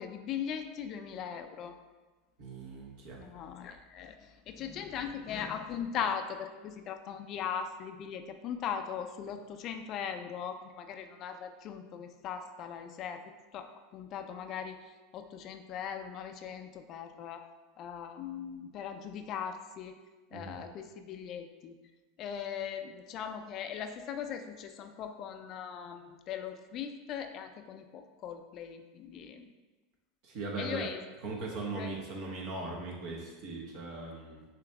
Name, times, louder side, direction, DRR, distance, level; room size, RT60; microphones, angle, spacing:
voice 1, 0.0-1.8 3.2-13.2 13.5-14.8 15.1-17.4 17.8-19.9 20.3-21.7 22.2-29.5 30.6-31.0 31.7-32.0, left 8 dB, 45° left, 7 dB, 0.4 m, -39 dB
voice 2, 2.4-3.2 20.3-20.5 30.2-30.9 31.2-34.4, right 3 dB, 60° right, -2 dB, 1.2 m, -39 dB
6.9 x 3.0 x 2.3 m, 1.2 s
hypercardioid pair, 105°, 0 cm